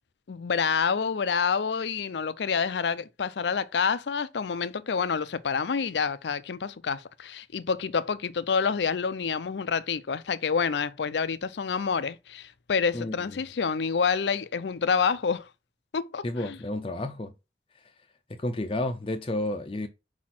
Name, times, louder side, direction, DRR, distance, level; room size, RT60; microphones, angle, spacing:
voice 1, 0.3-15.5 15.9-16.6, left 5 dB, 80° left, 0.5 m, -28 dB
voice 2, 12.9-13.4 16.2-17.3 18.4-19.9, left 1 dB, 30° left, 0.5 m, -31 dB
5.2 x 4.2 x 5.8 m
head